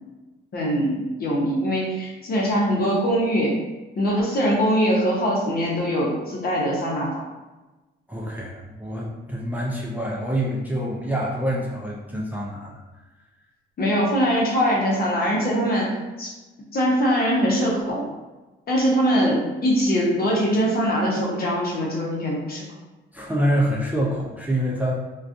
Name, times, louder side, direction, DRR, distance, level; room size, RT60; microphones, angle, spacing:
voice 1, 0.5-3.6 4.0-7.2 13.8-16.3 16.7-18.1 18.7-22.6, equal, 50° left, -3 dB, 0.8 m, -22 dB
voice 2, 8.1-12.8 23.1-24.9, equal, 10° right, -4 dB, 0.4 m, -26 dB
2.3 x 2.3 x 2.6 m, 1.1 s
cardioid pair, 90°, 20 cm